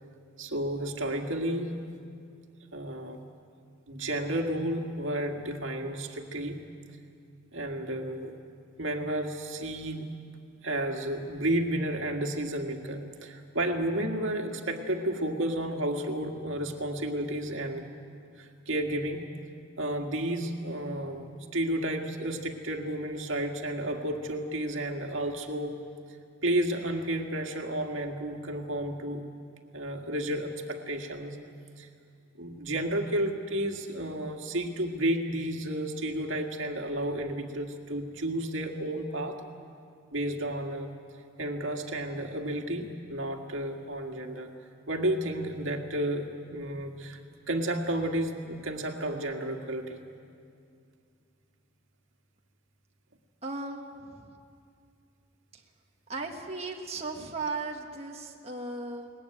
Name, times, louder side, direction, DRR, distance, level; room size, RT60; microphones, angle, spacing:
voice 1, 0.4-1.8 2.7-3.2 3.9-6.6 7.5-8.4 8.8-10.1 10.6-17.9 18.4-19.3 19.8-25.8 26.4-29.2 29.7-31.4 31.8-31.9 32.4-39.4 40.1-40.9 41.4-44.5 44.9-47.2 47.5-50.0, right 1 dB, 75° right, 3 dB, 1.9 m, -32 dB
voice 2, 53.4-54.3 55.5-55.6 56.1-59.1, right 3 dB, 30° right, 1 dB, 1.5 m, -36 dB
22.5 x 19.5 x 9.2 m, 2.4 s
head